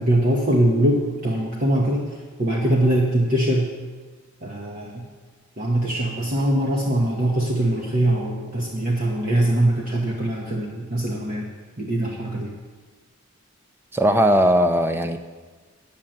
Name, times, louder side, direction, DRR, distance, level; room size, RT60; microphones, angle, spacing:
voice 1, 0.0-3.7 4.4-5.1 5.6-11.5 11.8-12.5, right 1 dB, 40° right, -1 dB, 1.0 m, -22 dB
voice 2, 13.9-15.2, equal, 10° right, 8 dB, 0.5 m, -18 dB
8.9 x 7.3 x 7.7 m, 1.4 s
head